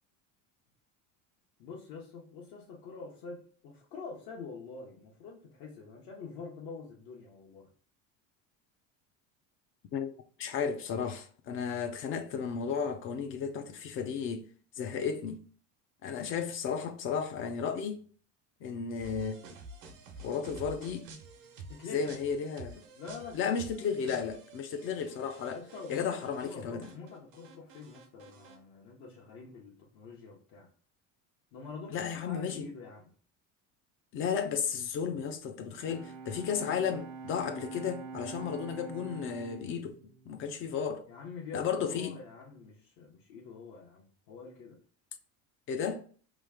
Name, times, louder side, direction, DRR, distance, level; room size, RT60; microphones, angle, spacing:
voice 1, 1.6-7.7 21.4-22.1 22.9-23.7 25.5-30.7 31.5-33.1 41.1-44.8, left 4 dB, 65° left, 1.0 m, -46 dB
voice 2, 9.9-14.5 14.8-15.4 16.0-18.0 18.6-19.4 20.2-21.1 21.9-22.8 23.3-25.6 25.9-26.9 31.9-32.6 34.1-40.0 40.3-41.0 41.5-42.2 45.7-46.0, left 6 dB, 35° left, 0.4 m, -34 dB
sound 1, 19.0-26.6 26.8-28.6, right 3 dB, 90° right, 1.0 m, -50 dB
Bowed string instrument, 35.6-41.3, right 5 dB, 70° right, 0.7 m, -46 dB
3.2 x 2.3 x 3.3 m
cardioid pair, 155°, 37 cm